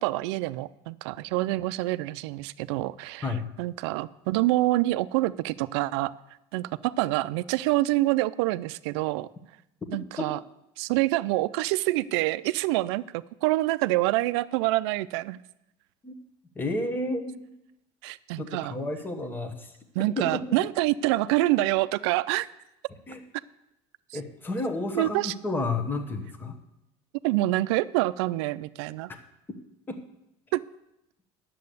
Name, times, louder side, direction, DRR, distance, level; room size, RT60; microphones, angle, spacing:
voice 1, 0.0-3.3 3.6-6.1 6.5-9.3 9.9-10.4 10.8-15.4 18.0-18.8 20.0-22.5 24.9-25.3 27.2-29.1 30.5-30.6, right 18 dB, 85° right, 15 dB, 0.4 m, -26 dB
voice 2, 9.9-10.4 16.0-16.1 16.5-17.5 18.4-19.8 20.2-20.6 23.1-23.2 24.1-26.6 29.5-29.6 29.9-30.0, left 2 dB, 15° left, 6 dB, 1.1 m, -31 dB
10.5 x 7.6 x 6.8 m, 0.86 s
supercardioid pair, 125°, 14 cm